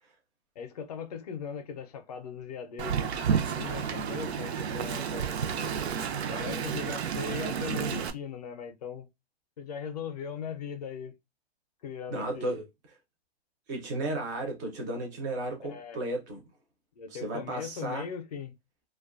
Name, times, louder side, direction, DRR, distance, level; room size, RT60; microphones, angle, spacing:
voice 1, 0.6-5.3 5.6-5.8 6.3-9.1 9.6-11.1 11.8-12.6 15.7-16.0 17.0-18.6, left 6 dB, 40° left, 0.4 m, -39 dB
Wind, 2.8-8.1, right 7 dB, 85° right, 0.5 m, -31 dB
voice 2, 12.1-12.7 13.7-16.4 17.1-18.1, right 2 dB, 15° right, 0.4 m, -34 dB
2.4 x 2.2 x 2.3 m
hypercardioid pair, 155°, 31 cm